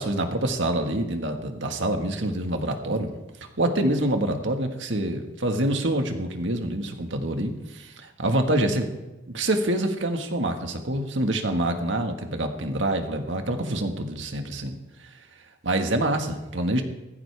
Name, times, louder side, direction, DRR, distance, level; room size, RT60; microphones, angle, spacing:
voice 1, 0.0-3.1 3.6-8.9 9.3-14.8 15.6-16.8, right 1 dB, 85° right, 5 dB, 1.7 m, -26 dB
17.5 x 14.5 x 3.5 m, 1.1 s
head